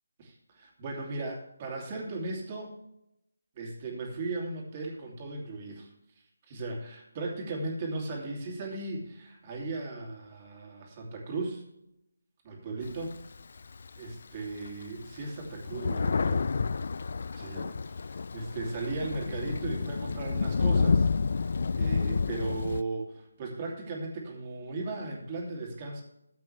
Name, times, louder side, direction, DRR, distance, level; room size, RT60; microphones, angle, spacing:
voice 1, 0.2-2.7 3.5-5.9 6.5-11.6 12.4-13.1 14.0-16.4 17.3-21.1 21.4-26.0, right 3 dB, 30° right, -1 dB, 2.8 m, -37 dB
Thunder, 12.8-14.1 14.7-14.8 15.0-22.8, left 4 dB, 55° left, 0.3 m, -29 dB
14.0 x 7.4 x 3.3 m, 0.82 s
figure-of-eight pair, 155°, 0 cm